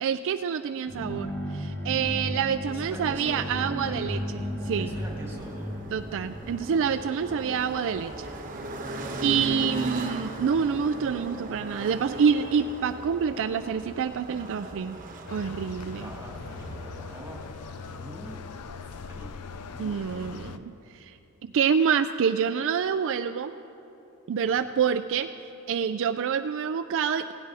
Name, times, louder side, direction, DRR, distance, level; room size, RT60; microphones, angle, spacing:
voice 1, 0.0-4.9 5.9-8.3 9.2-15.0 15.3-16.1 19.8-23.5 24.3-27.3, right 7 dB, 60° right, 10 dB, 0.3 m, -27 dB
sound 1, 0.9-8.6, equal, 10° left, 1.5 m, -35 dB
sound 2, 2.5-19.9, right 1 dB, 40° right, 1.1 m, -39 dB
voice 2, 2.7-4.3 4.8-5.8 15.7-17.4 17.9-18.4 19.0-19.5 19.7-20.6 24.5-24.7, equal, 10° right, -2 dB, 2.3 m, -44 dB
sound 3, 15.3-20.6, left 6 dB, 90° left, 0.5 m, -41 dB
17.0 x 16.0 x 3.5 m, 3.0 s
head